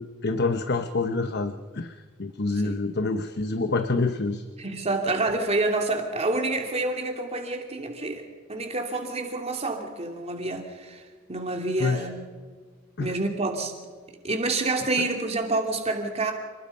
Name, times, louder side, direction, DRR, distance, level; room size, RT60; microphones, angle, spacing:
voice 1, 0.0-4.4 11.8-12.1 13.0-13.1, left 3 dB, 55° left, 9 dB, 1.0 m, -27 dB
voice 2, 4.6-8.2 8.5-11.0 11.3-12.2 13.0-13.7 14.2-16.3, right 2 dB, 30° right, 3 dB, 2.8 m, -28 dB
28.0 x 20.0 x 5.6 m, 1.5 s
head